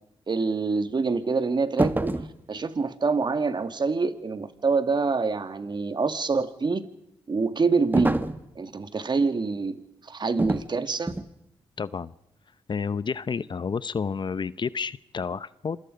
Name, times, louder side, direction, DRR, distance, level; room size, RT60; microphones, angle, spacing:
voice 1, 0.3-2.1 2.5-6.9 7.3-8.2 8.6-11.1, right 4 dB, 40° right, 10 dB, 1.9 m, -26 dB
sound 1, 1.8-2.4 7.9-8.5 10.4-10.7 11.1-11.3, right 2 dB, 15° right, 1.6 m, -26 dB
voice 2, 11.8-12.1 12.7-15.8, left 5 dB, 45° left, 17 dB, 0.8 m, -30 dB
27.0 x 23.5 x 5.2 m, 0.85 s
supercardioid pair, 55°, 11 cm